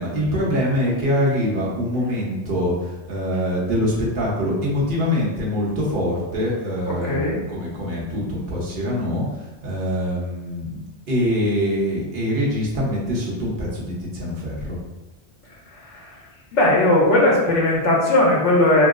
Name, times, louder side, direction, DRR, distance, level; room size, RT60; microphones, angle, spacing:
voice 1, 0.0-10.8 11.1-14.8, equal, 50° right, -5 dB, 1.0 m, -24 dB
voice 2, 6.9-7.4 15.8-16.2 16.5-18.9, left 1 dB, 80° left, -3 dB, 1.2 m, -18 dB
2.9 x 2.0 x 3.6 m, 1.1 s
omnidirectional pair, 1.2 m